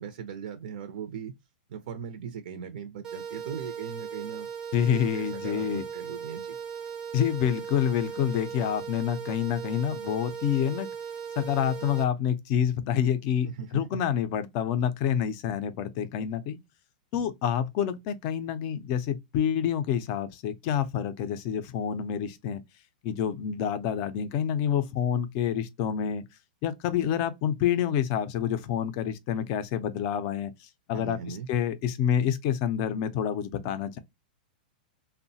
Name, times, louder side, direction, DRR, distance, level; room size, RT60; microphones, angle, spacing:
voice 1, 0.0-1.3 1.7-4.5 4.8-6.6 13.5-13.8 30.9-31.5, right 7 dB, 70° right, 0.5 m, -39 dB
sound 1, 3.0-12.0, right 7 dB, 15° right, 0.5 m, -38 dB
voice 2, 4.7-5.9 7.1-10.9 11.4-16.6 17.1-22.6 23.0-26.2 26.6-30.5 30.9-34.0, left 9 dB, 35° left, 0.4 m, -28 dB
2.9 x 2.1 x 2.7 m
supercardioid pair, 160°, 5 cm